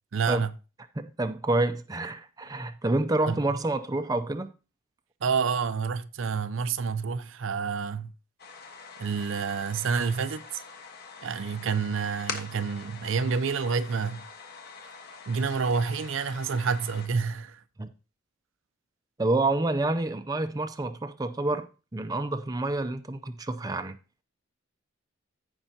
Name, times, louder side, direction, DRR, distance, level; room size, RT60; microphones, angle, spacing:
voice 1, 0.1-0.5 3.3-3.4 5.2-8.1 9.0-10.6 11.2-14.3 15.3-17.6, right 5 dB, 65° right, 0.5 m, -28 dB
voice 2, 1.0-4.5 17.8-17.9 19.2-24.0, right 2 dB, 15° right, 0.5 m, -28 dB
sound 1, 8.4-17.1, left 5 dB, 50° left, 1.3 m, -44 dB
14.5 x 5.4 x 2.8 m
head